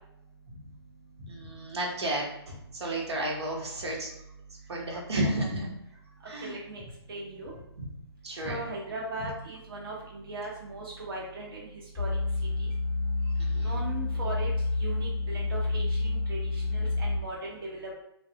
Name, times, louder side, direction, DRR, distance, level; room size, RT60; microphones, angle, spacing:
voice 1, 1.3-4.1 4.7-5.7 6.3-6.6 7.8-7.9 8.2-8.6 13.4-13.9, right 1 dB, 80° right, -2 dB, 1.1 m, -32 dB
voice 2, 6.4-6.8 7.1-7.5 8.4-11.7 11.9-12.1 12.6-12.7 13.5-14.5 14.8-17.9, right 2 dB, 60° right, -4 dB, 0.9 m, -38 dB
sound 1, 11.9-17.2, left 3 dB, 30° right, 1.0 m, -29 dB
3.3 x 2.2 x 2.8 m, 0.80 s
hypercardioid pair, 165°, 14 cm